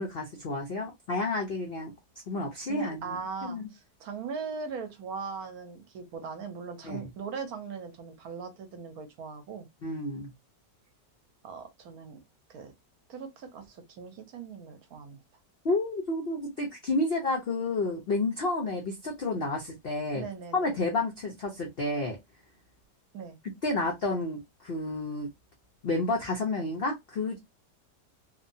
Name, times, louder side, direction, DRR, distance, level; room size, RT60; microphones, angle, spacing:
voice 1, 0.0-1.9 2.3-3.6 6.8-7.1 9.8-10.3 15.6-20.2 20.5-22.2 23.6-25.3 25.8-27.4, left 2 dB, 85° left, 0.5 m, -30 dB
voice 2, 2.7-9.7 11.4-12.2 12.5-12.7 13.1-15.2 20.1-20.8 23.1-23.4, right 5 dB, 65° right, 1.0 m, -39 dB
2.9 x 2.2 x 2.6 m
omnidirectional pair, 1.9 m